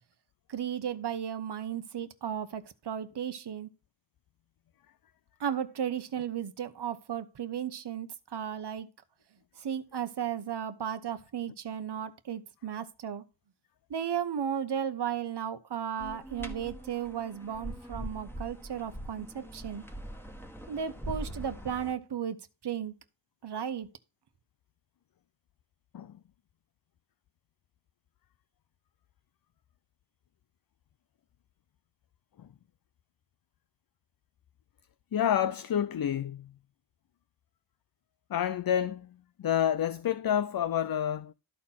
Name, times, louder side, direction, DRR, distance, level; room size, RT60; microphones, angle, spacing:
voice 1, 0.5-3.7 5.4-8.9 9.6-13.2 13.9-19.9 20.7-22.9 23.4-23.9, right 8 dB, 80° right, 1.0 m, -35 dB
sound 1, 16.0-21.9, right 1 dB, 5° left, 1.5 m, -42 dB
voice 2, 35.1-36.5 38.3-41.3, left 10 dB, 60° left, 0.5 m, -29 dB
13.0 x 4.3 x 5.6 m
wide cardioid pair, 115°, 40 cm